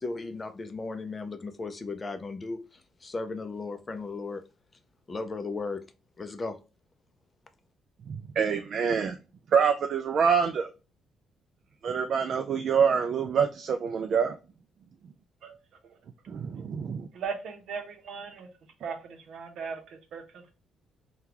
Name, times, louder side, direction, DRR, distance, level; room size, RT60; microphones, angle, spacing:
voice 1, 0.0-4.4 5.1-5.8 6.2-6.6, left 3 dB, 25° left, 0.4 m, -36 dB
voice 2, 8.1-9.2 9.5-10.7 11.8-14.4 16.3-17.1, right 6 dB, 50° right, 0.3 m, -26 dB
voice 3, 17.1-18.5 18.8-20.5, right 5 dB, 70° right, 0.8 m, -38 dB
3.7 x 2.2 x 2.9 m
cardioid pair, 135°, 0 cm